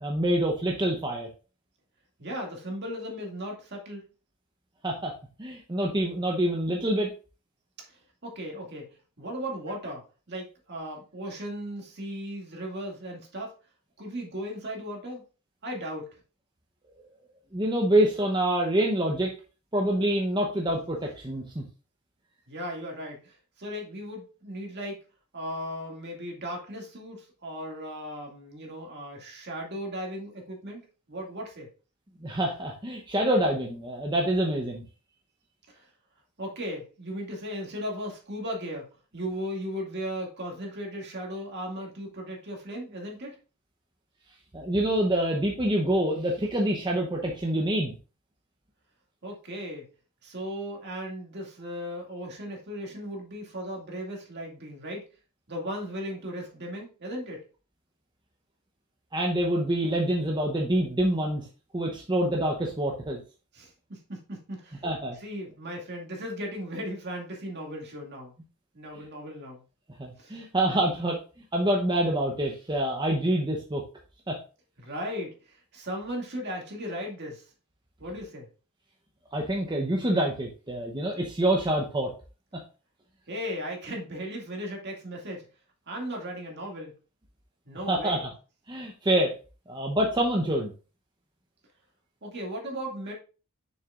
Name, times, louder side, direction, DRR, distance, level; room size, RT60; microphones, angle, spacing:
voice 1, 0.0-1.3 4.8-5.1 5.4-7.1 17.5-19.3 19.7-21.6 32.2-34.8 44.5-47.9 59.1-61.5 61.7-63.2 64.8-65.2 70.0-71.2 71.5-73.8 74.3-74.4 79.3-82.1 87.9-88.2 88.7-89.3 89.7-90.7, right 1 dB, 20° right, 0 dB, 0.8 m, -26 dB
voice 2, 2.2-4.0 7.9-13.5 14.0-15.2 15.6-16.1 22.5-25.0 25.3-30.8 31.1-31.7 35.7-35.9 36.4-43.4 49.2-49.9 50.2-55.1 55.5-57.4 63.5-64.8 65.1-68.3 68.7-69.6 70.2-70.4 74.8-77.5 78.0-78.5 83.3-85.5 85.9-86.9 87.7-88.2 92.2-93.1, equal, 50° right, 0 dB, 2.2 m, -37 dB
6.7 x 6.5 x 2.4 m, 0.34 s
head